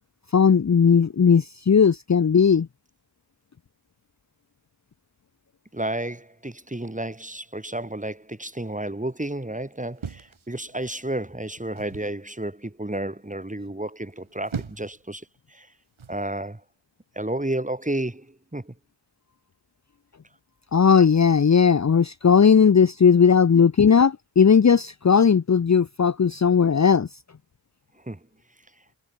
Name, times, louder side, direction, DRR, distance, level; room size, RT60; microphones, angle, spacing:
voice 1, 0.3-2.7 20.7-27.1, left 6 dB, 35° left, 0.8 m, -17 dB
voice 2, 5.7-15.7 16.1-16.6 17.2-18.7 28.1-28.2, right 1 dB, 15° right, 3.9 m, -31 dB
sound 1, 10.0-11.0 11.8-12.2 14.1-15.0 16.0-16.3, right 6 dB, 80° right, 4.5 m, -38 dB
cardioid pair, 50°, 47 cm